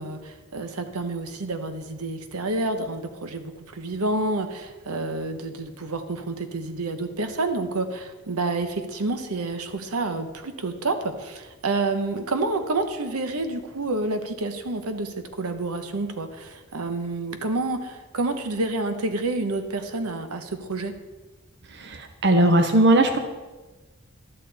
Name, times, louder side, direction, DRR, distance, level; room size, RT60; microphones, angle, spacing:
voice 1, 0.0-21.0, right 2 dB, 85° right, 8 dB, 0.9 m, -29 dB
voice 2, 21.8-23.2, right 1 dB, 50° right, 7 dB, 0.8 m, -19 dB
12.0 x 8.9 x 4.1 m, 1.2 s
head